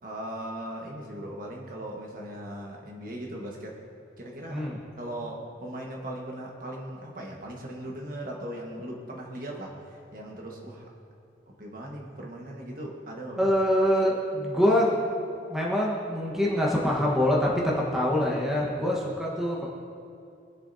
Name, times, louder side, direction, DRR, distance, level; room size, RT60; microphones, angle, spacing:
voice 1, 0.0-3.7 4.2-4.7 5.0-10.9 11.5-13.5, right 1 dB, 50° right, -1 dB, 1.5 m, -38 dB
voice 2, 13.4-15.0 15.5-19.6, left 1 dB, ahead, -4 dB, 1.2 m, -25 dB
21.0 x 7.4 x 2.8 m, 2.5 s
head